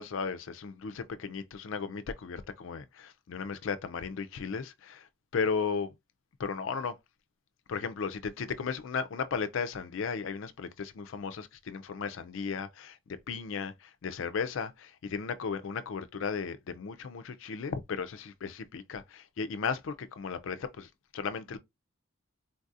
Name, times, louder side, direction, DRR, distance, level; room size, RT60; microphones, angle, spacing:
voice 1, 0.0-6.0 6.4-6.9 7.7-21.6, left 5 dB, 65° left, 0.4 m, -35 dB
3.8 x 2.4 x 2.6 m
head